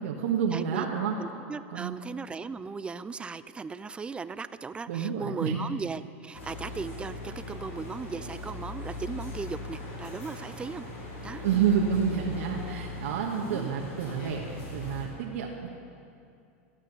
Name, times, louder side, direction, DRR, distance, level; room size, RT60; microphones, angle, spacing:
voice 1, 0.0-1.2 1.7-2.0 4.9-5.6 11.4-14.4 14.7-15.7, right 7 dB, 75° right, -1 dB, 1.2 m, -29 dB
voice 2, 0.5-0.9 1.2-10.9 11.2-11.5 13.4-13.7, right 4 dB, 15° right, 14 dB, 0.4 m, -37 dB
sound 1, 6.3-15.0, left 2 dB, 70° left, 4.2 m, -39 dB
14.5 x 9.0 x 6.7 m, 2.5 s
supercardioid pair, 115°, 7 cm